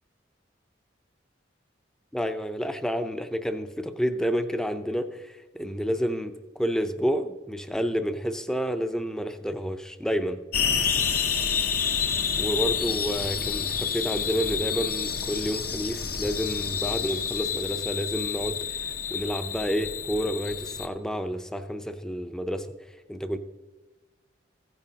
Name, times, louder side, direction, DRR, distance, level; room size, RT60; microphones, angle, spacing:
voice 1, 2.1-10.4 12.4-22.7 23.1-23.4, equal, 5° left, 8 dB, 0.5 m, -29 dB
sound 1, 10.5-20.9, left 7 dB, 55° left, 0.7 m, -29 dB
15.0 x 9.0 x 2.8 m, 1.2 s
head